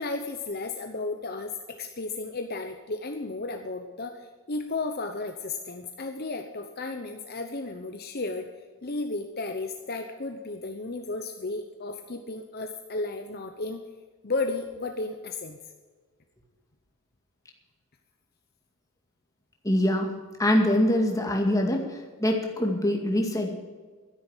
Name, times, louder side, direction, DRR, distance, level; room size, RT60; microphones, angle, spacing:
voice 1, 0.0-8.5 8.8-13.8 14.2-15.6, left 3 dB, 45° left, 5 dB, 0.9 m, -33 dB
voice 2, 19.6-20.1 20.4-21.8 22.2-23.5, left 1 dB, 15° left, 2 dB, 2.2 m, -23 dB
12.5 x 10.5 x 7.3 m, 1.5 s
head